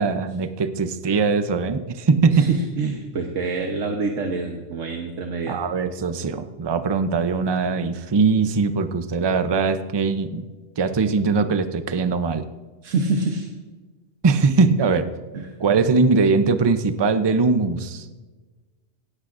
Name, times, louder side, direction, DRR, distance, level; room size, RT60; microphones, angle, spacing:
voice 1, 0.0-2.5 5.5-10.4 10.8-12.4 14.2-15.1 15.6-18.1, right 4 dB, 30° right, 10 dB, 0.5 m, -21 dB
voice 2, 2.3-5.6 12.8-13.5 15.3-15.5, right 3 dB, 85° right, 2 dB, 1.4 m, -26 dB
17.5 x 14.5 x 2.6 m, 1.3 s
omnidirectional pair, 1.3 m